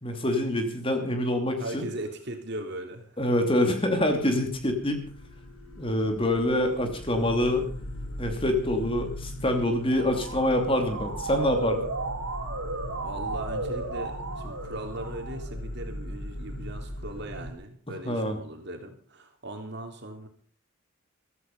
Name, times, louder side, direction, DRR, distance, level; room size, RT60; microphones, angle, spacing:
voice 1, 0.0-1.8 3.2-5.1 5.8-7.7 8.2-11.8 18.1-18.3, left 1 dB, 25° left, 5 dB, 2.8 m, -26 dB
voice 2, 1.6-3.2 13.0-20.3, right 1 dB, 50° right, 5 dB, 3.3 m, -39 dB
sound 1, 4.1-17.5, left 1 dB, 90° left, 4.3 m, -39 dB
Motor vehicle (road) / Siren, 9.7-15.6, right 2 dB, 75° right, 3.4 m, -35 dB
15.5 x 14.5 x 5.4 m, 0.44 s
head